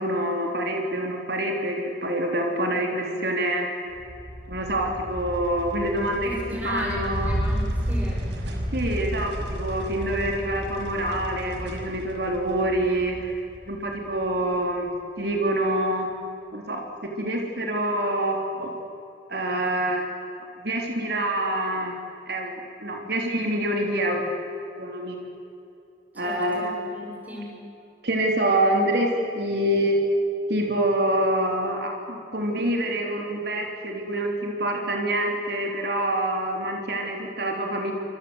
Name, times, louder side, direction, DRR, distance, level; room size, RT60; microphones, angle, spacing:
voice 1, 0.0-3.7 4.5-7.4 8.7-13.4 13.7-14.9 15.2-16.1 16.5-18.8 19.3-20.1 20.6-21.9 22.3-24.3 24.8-25.2 26.2-26.7 28.0-30.0 30.5-37.9, right 1 dB, 65° right, 1 dB, 3.8 m, -26 dB
sound 1, 3.9-14.5, equal, 90° right, 5.0 m, -32 dB
voice 2, 6.2-8.3 26.2-27.7, equal, 10° right, -1 dB, 6.5 m, -35 dB
28.5 x 26.0 x 8.1 m, 2.7 s
head